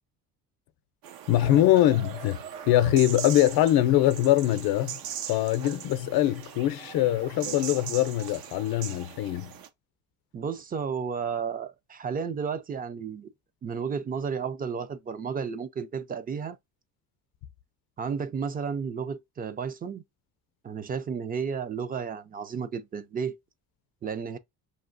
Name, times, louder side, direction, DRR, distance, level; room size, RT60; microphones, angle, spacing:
sound 1, 1.0-9.7, right 9 dB, 75° right, 0.8 m, -40 dB
voice 1, 1.3-2.4 2.7-5.0 5.3-9.5, left 13 dB, 85° left, 0.6 m, -23 dB
voice 2, 10.3-13.3 13.6-16.6 18.0-20.0 20.6-23.4 24.0-24.4, right 6 dB, 25° right, 0.4 m, -32 dB
5.3 x 2.7 x 2.5 m
cardioid pair, 150°, 36 cm